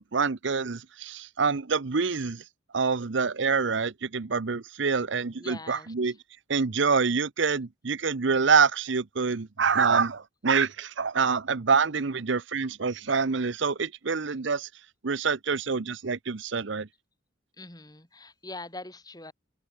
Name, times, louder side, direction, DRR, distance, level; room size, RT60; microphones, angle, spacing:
voice 1, 0.0-2.4 2.7-6.1 6.5-14.7 15.0-16.9, right 5 dB, 65° right, 0.7 m, -26 dB
voice 2, 5.3-6.2 17.6-19.3, left 2 dB, 20° left, 5.3 m, -43 dB
open air
head